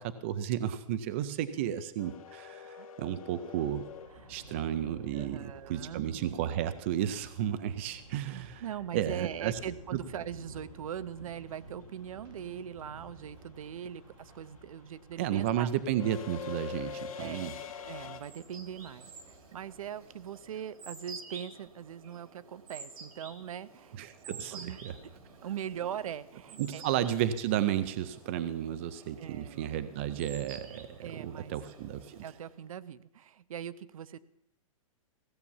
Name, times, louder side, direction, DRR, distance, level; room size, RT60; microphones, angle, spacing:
voice 1, 0.0-3.8 4.3-8.6 8.9-9.6 9.9-10.0 15.2-17.5 24.0-24.9 26.6-32.2, right 11 dB, 20° right, 13 dB, 0.4 m, -33 dB
sound 1, 2.0-6.0 8.4-8.5 9.8-10.1 10.4-18.2, left 8 dB, 75° left, 1.8 m, -45 dB
Thunder, 3.4-20.8, right 1 dB, 55° right, 3.5 m, -54 dB
voice 2, 5.1-6.1 8.3-15.7 17.2-24.0 24.3-24.8 25.4-26.8 29.2-29.7 30.7-31.5 32.2-34.2, right 9 dB, 75° right, 17 dB, 0.6 m, -41 dB
sound 2, 17.7-32.6, right 4 dB, 90° right, 2.7 m, -51 dB
16.0 x 7.2 x 7.1 m, 0.78 s
hypercardioid pair, 175°, 18 cm